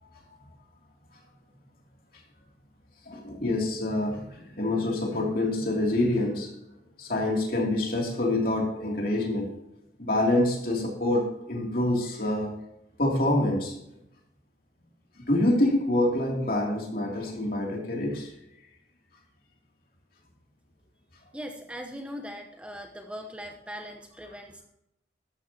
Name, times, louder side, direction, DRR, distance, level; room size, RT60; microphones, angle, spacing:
voice 1, 3.1-6.5 7.0-9.5 10.0-12.6 13.0-13.8 15.2-18.3, left 1 dB, 55° left, 2.9 m, -26 dB
voice 2, 21.3-24.6, equal, 5° right, 0.9 m, -40 dB
13.0 x 12.5 x 2.9 m
head